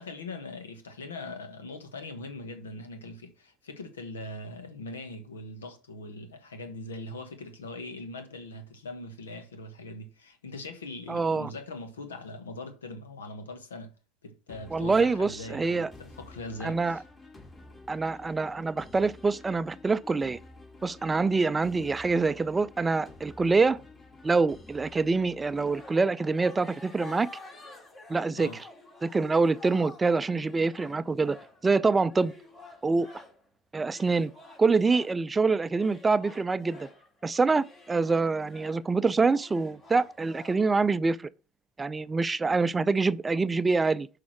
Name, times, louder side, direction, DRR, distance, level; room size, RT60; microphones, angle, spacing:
voice 1, 0.0-13.9 14.2-17.0 28.4-28.6, left 2 dB, 90° left, 1.0 m, -41 dB
voice 2, 11.1-11.5 14.7-15.9 16.6-17.0 17.9-20.4 20.8-23.8 24.2-27.3 28.1-28.5 29.0-31.4 31.6-32.3 32.8-33.1 33.7-34.3 34.6-36.9 37.2-41.2 41.8-44.1, right 4 dB, 20° right, 0.4 m, -25 dB
sound 1, 14.5-25.9, left 2 dB, 25° left, 2.3 m, -51 dB
sound 2, 25.5-33.4 33.9-35.2 35.7-40.8, left 3 dB, 40° left, 2.5 m, -50 dB
6.2 x 4.8 x 5.9 m
hypercardioid pair, 75°, 0 cm